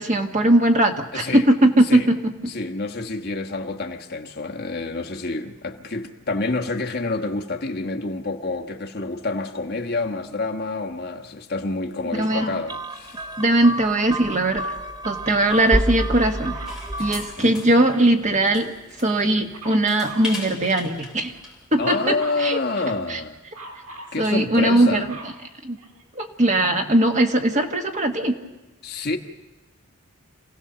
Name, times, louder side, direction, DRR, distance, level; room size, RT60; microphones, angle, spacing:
voice 1, 0.0-2.3 12.2-12.5 13.4-14.7 15.0-16.5 17.0-18.7 19.0-21.3 21.7-22.1 22.4-22.6 23.1-23.2 24.2-25.2 25.6-25.8 26.1-28.4, right 1 dB, 35° right, 1.4 m, -19 dB
voice 2, 1.1-1.4 1.8-2.1 2.5-13.3 17.4-17.6 21.8-23.4 24.1-25.1 28.8-29.2, left 3 dB, 45° left, 1.4 m, -28 dB
Dog, 12.3-12.7 16.5-17.4 19.5-20.3 21.8-22.5 23.5-24.2 24.7-26.2 27.0-27.1, right 2 dB, 80° right, 4.6 m, -41 dB
sound 1, 12.7-17.4, right 1 dB, 20° right, 0.8 m, -29 dB
sound 2, 16.7-21.7, left 3 dB, 5° right, 4.1 m, -39 dB
27.0 x 17.0 x 6.9 m
head